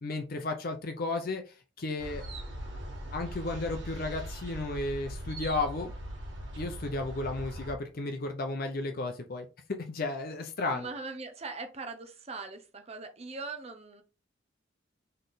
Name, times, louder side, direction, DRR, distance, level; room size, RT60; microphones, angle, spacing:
voice 1, 0.0-2.2 3.1-5.9 6.6-9.5 9.9-10.9, left 2 dB, 50° left, 0.6 m, -33 dB
sound 1, 2.0-7.8, right 1 dB, 65° right, 1.4 m, -40 dB
voice 2, 10.7-14.0, right 3 dB, 35° right, 0.7 m, -41 dB
3.9 x 3.2 x 3.9 m
head